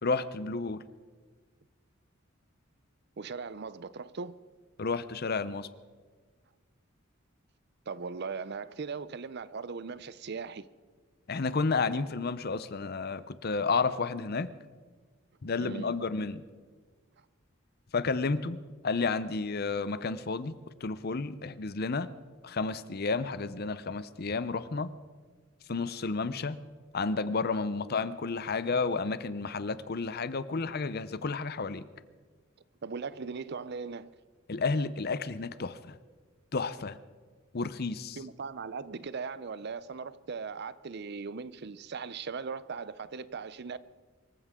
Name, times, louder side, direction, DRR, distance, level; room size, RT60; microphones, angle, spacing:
voice 1, 0.0-0.8 4.8-5.7 11.3-14.5 15.4-16.4 17.9-18.6 18.8-20.5 20.8-22.1 22.4-24.9 25.7-26.6 26.9-31.8 34.5-36.0 36.5-37.0 37.5-38.2, left 4 dB, 50° left, 0.7 m, -31 dB
voice 2, 3.2-4.4 7.9-10.7 15.6-16.0 27.8-28.0 32.8-34.1 38.2-43.8, right 5 dB, 55° right, 0.6 m, -39 dB
25.0 x 15.0 x 3.7 m
head